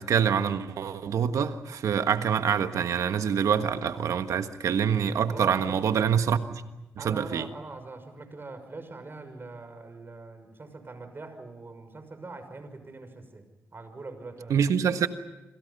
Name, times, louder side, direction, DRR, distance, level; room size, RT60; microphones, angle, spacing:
voice 1, 0.0-6.6 7.0-7.5 14.5-15.1, right 7 dB, 80° right, 1.5 m, -26 dB
voice 2, 5.3-5.8 7.0-13.5 13.7-14.6, right 3 dB, 40° right, 5.9 m, -42 dB
27.0 x 27.0 x 5.5 m
supercardioid pair, 50°, 5 cm